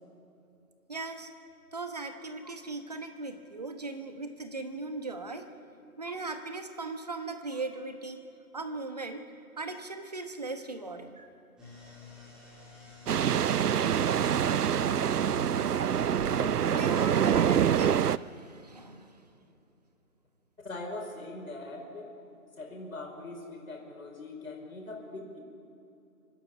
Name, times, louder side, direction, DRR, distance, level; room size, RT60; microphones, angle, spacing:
voice 1, 0.9-1.3 1.7-5.5 6.0-8.2 8.5-9.3 9.6-11.3 16.7-19.2, right 3 dB, 25° right, 7 dB, 1.0 m, -39 dB
sound 1, 11.6-17.4, left 6 dB, ahead, 1.8 m, -48 dB
sound 2, 13.1-18.2, right 9 dB, 85° right, 0.6 m, -26 dB
voice 2, 16.4-17.1 20.6-22.1 22.5-25.4, left 2 dB, 65° left, 1 dB, 4.9 m, -41 dB
25.0 x 12.0 x 9.5 m, 2.9 s
figure-of-eight pair, 165°, 45 cm